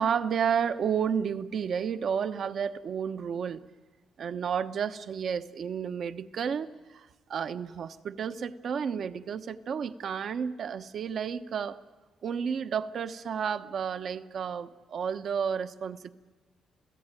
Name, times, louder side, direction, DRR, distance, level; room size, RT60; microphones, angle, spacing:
voice 1, 0.0-3.6 4.2-11.8 12.2-16.1, right 7 dB, 60° right, 10 dB, 1.0 m, -31 dB
28.0 x 17.5 x 9.0 m, 1.3 s
cardioid pair, 90°, 0 cm